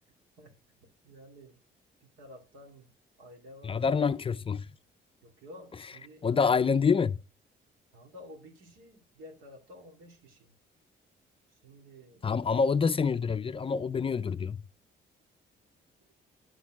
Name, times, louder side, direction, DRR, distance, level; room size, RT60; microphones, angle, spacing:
voice 1, 0.8-1.6 2.0-2.9 3.2-3.8 5.2-6.3 7.9-10.5 11.5-12.3, left 1 dB, 90° right, 2.4 m, -51 dB
voice 2, 3.6-4.7 6.2-7.2 12.2-14.6, left 5 dB, 25° left, 0.4 m, -26 dB
9.2 x 4.3 x 4.8 m
cardioid pair, 90°, 20 cm